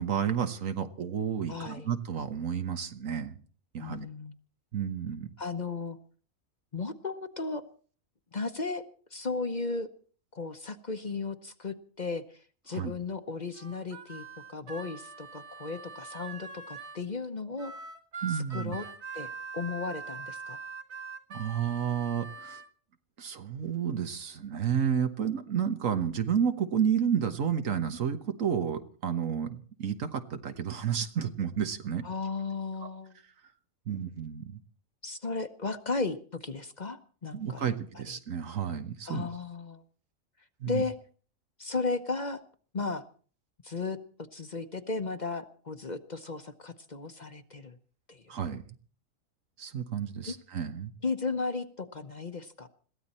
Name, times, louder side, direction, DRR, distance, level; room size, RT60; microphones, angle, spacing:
voice 1, 0.0-3.3 3.7-4.1 4.7-5.3 12.7-12.9 18.2-18.8 21.3-22.6 23.2-32.0 33.9-34.6 37.3-39.3 40.6-40.8 48.3-48.6 49.6-50.9, right 8 dB, 75° right, 9 dB, 1.6 m, -31 dB
voice 2, 1.5-1.9 3.8-4.4 5.4-6.0 6.7-7.6 8.3-8.8 9.1-9.9 10.3-17.7 18.3-18.9 19.1-20.6 32.0-33.2 35.0-38.2 39.0-39.8 40.7-41.0 41.6-42.4 42.7-43.0 43.6-44.0 44.3-47.8 48.1-48.3 50.2-50.3 51.0-52.7, left 4 dB, 35° left, 9 dB, 1.0 m, -35 dB
Harmonica, 13.5-17.0 17.6-22.7, right 4 dB, 55° right, 1.6 m, -43 dB
22.0 x 15.0 x 4.3 m, 0.43 s
omnidirectional pair, 1.4 m